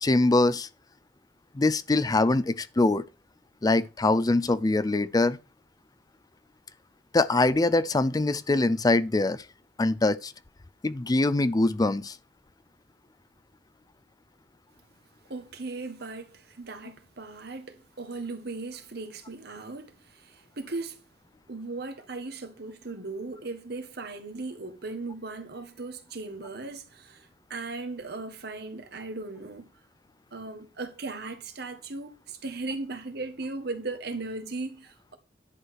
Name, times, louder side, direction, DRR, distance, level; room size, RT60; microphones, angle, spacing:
voice 1, 0.0-0.7 1.5-3.0 3.6-5.4 7.1-9.4 9.8-10.3 10.8-12.2, left 2 dB, 20° left, 0.4 m, -23 dB
voice 2, 15.3-21.0 21.5-29.7 30.3-35.2, right 3 dB, 65° right, 1.6 m, -37 dB
10.5 x 4.8 x 6.4 m
head